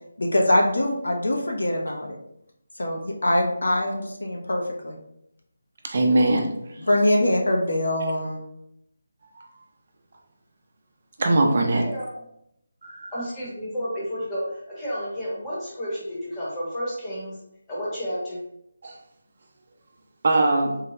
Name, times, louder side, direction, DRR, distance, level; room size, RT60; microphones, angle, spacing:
voice 1, 0.2-2.2 2.8-5.0 6.8-8.4, left 1 dB, 85° left, 1 dB, 0.7 m, -23 dB
voice 2, 5.8-6.5 9.2-9.3 11.2-11.9 12.8-13.1 18.8-19.0 20.2-20.8, right 2 dB, 45° right, 2 dB, 0.5 m, -21 dB
voice 3, 13.1-17.3 17.7-18.4, equal, 10° left, -8 dB, 0.9 m, -31 dB
3.7 x 2.2 x 3.0 m, 0.77 s
figure-of-eight pair, 175°, 0 cm